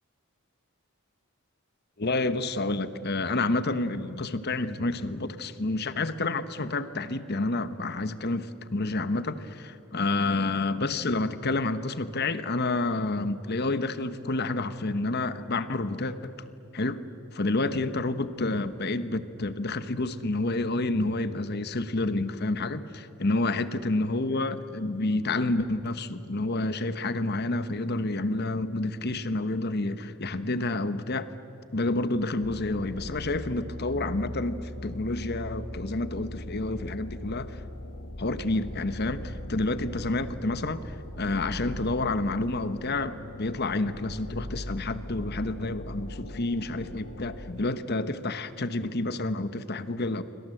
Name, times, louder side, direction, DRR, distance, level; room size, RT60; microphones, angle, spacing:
voice 1, 2.0-16.3 16.7-17.0 17.3-31.3 31.7-37.6 38.2-50.2, left 2 dB, 45° left, 12 dB, 1.1 m, -29 dB
sound 1, 32.4-47.5, left 1 dB, 70° left, 1.2 m, -40 dB
28.0 x 25.0 x 7.8 m, 2.9 s
head